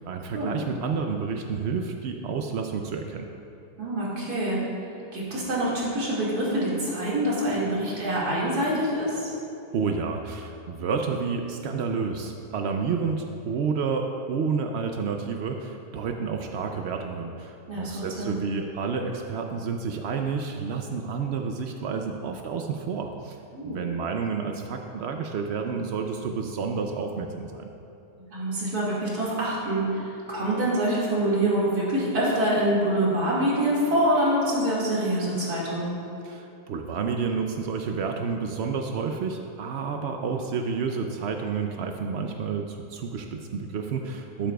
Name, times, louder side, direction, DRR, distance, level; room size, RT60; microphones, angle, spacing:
voice 1, 0.1-3.3 9.7-23.4 23.6-27.7 36.2-44.5, right 5 dB, 85° right, 4 dB, 0.5 m, -30 dB
voice 2, 3.8-4.6 5.1-9.3 17.7-18.4 23.5-23.8 28.2-35.9, right 1 dB, 65° right, -7 dB, 2.6 m, -25 dB
12.5 x 8.7 x 2.3 m, 2.8 s
omnidirectional pair, 1.7 m